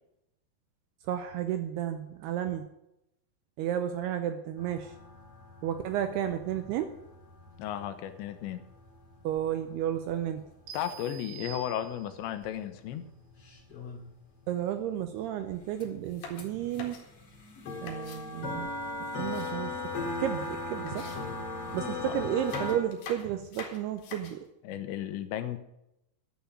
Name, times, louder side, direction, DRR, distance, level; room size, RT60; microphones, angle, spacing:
voice 1, 1.1-2.7 3.6-4.9 5.6-6.9 9.2-10.4 14.5-17.0 17.8-18.7 19.2-19.7 20.2-21.2 21.7-24.5, right 10 dB, 85° right, 8 dB, 2.4 m, -32 dB
sound 1, 4.6-10.2 11.8-11.9 12.4-12.5 12.7-14.2 15.5-15.6 15.8-15.9 16.4-22.8, left 3 dB, 40° left, 2.4 m, -38 dB
voice 2, 7.6-8.6 10.7-13.0 22.0-22.1 24.6-25.6, left 10 dB, 85° left, 10 dB, 3.1 m, -34 dB
sound 2, 10.7-12.4, right 9 dB, 65° right, 2.8 m, -47 dB
sound 3, 16.0-18.3 18.8-20.1 20.4-20.5 20.9-21.8 22.3-24.5, left 5 dB, 65° left, 3.6 m, -46 dB
10.5 x 7.2 x 9.3 m, 0.85 s
omnidirectional pair, 5.3 m